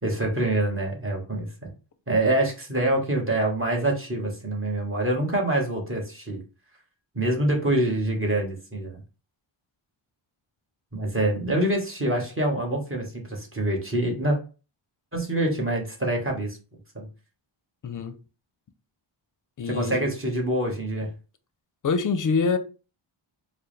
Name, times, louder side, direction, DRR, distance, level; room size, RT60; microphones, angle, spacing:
voice 1, 0.0-1.5 2.1-6.4 7.1-9.0 10.9-14.4 15.1-16.6 16.9-17.1 19.7-21.1, right 1 dB, 25° right, 1.1 m, -25 dB
voice 2, 17.8-18.1 19.6-20.1 21.8-22.6, left 5 dB, 40° left, 0.5 m, -25 dB
4.5 x 2.0 x 3.2 m
wide cardioid pair, 105°, 49 cm